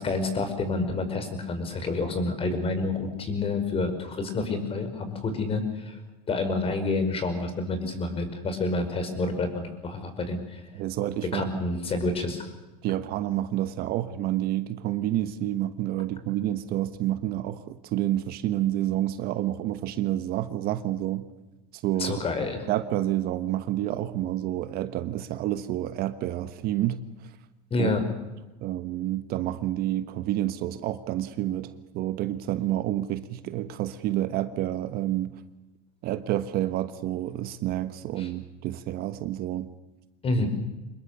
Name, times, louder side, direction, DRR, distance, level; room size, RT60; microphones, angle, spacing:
voice 1, 0.0-6.0 6.3-10.6 11.3-12.5 22.0-22.6 27.7-28.0 38.2-38.3 40.2-40.5, left 3 dB, 30° left, 8 dB, 5.4 m, -28 dB
voice 2, 10.7-11.5 12.8-21.3 21.7-22.2 22.7-27.0 27.8-28.0 28.6-35.4 36.0-39.7, right 13 dB, 50° right, 11 dB, 1.3 m, -29 dB
26.0 x 20.5 x 6.9 m, 1.1 s
supercardioid pair, 110°, 20 cm